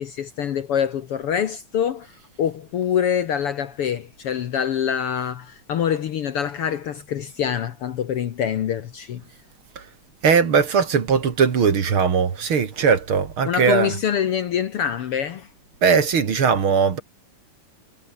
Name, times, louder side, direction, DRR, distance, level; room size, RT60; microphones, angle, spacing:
voice 1, 0.0-2.1 2.4-9.2 13.5-15.5, left 8 dB, 60° left, 1.7 m, -25 dB
voice 2, 10.2-13.9 15.8-17.0, right 6 dB, 45° right, 2.7 m, -19 dB
omnidirectional pair, 3.5 m